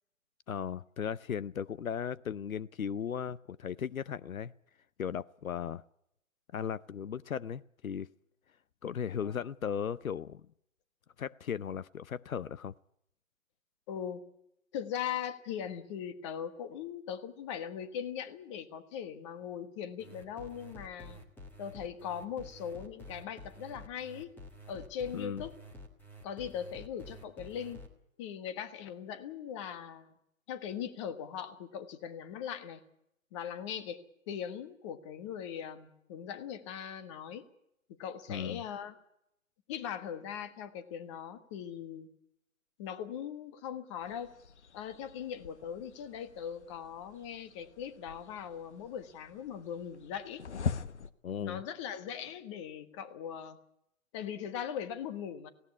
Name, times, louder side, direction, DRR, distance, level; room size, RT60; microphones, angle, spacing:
voice 1, 0.5-4.5 5.0-5.8 6.5-8.1 8.8-10.5 11.2-12.7 25.1-25.4 38.3-38.6 51.2-51.6, left 8 dB, 80° left, 19 dB, 0.7 m, -36 dB
voice 2, 13.9-14.2 14.7-21.2 21.6-24.3 24.7-25.5 26.2-27.8 28.2-30.1 30.5-32.8 33.3-34.0 34.3-37.4 38.0-38.9 39.7-42.1 42.8-44.3 44.7-50.4 51.4-53.6 54.1-55.5, left 8 dB, 20° left, 11 dB, 1.4 m, -40 dB
sound 1, 20.0-27.9, left 1 dB, 5° left, 1.6 m, -50 dB
sound 2, 44.0-51.1, left 6 dB, 55° left, 1.2 m, -43 dB
18.0 x 17.0 x 9.6 m, 0.77 s
figure-of-eight pair, 145°, 41 cm